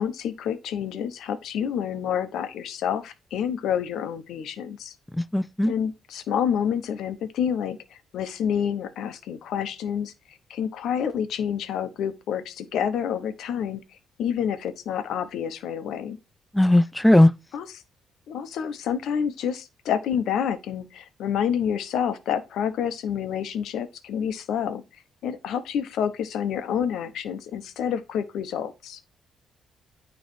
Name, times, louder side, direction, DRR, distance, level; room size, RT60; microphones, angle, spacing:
voice 1, 0.0-4.9 5.6-7.8 8.1-13.8 14.2-16.2 17.5-17.7 18.3-29.0, left 8 dB, 75° left, 0.9 m, -28 dB
voice 2, 5.1-5.7 16.5-17.3, left 1 dB, 5° left, 0.4 m, -18 dB
9.4 x 3.2 x 4.4 m
cardioid pair, 90°, 0 cm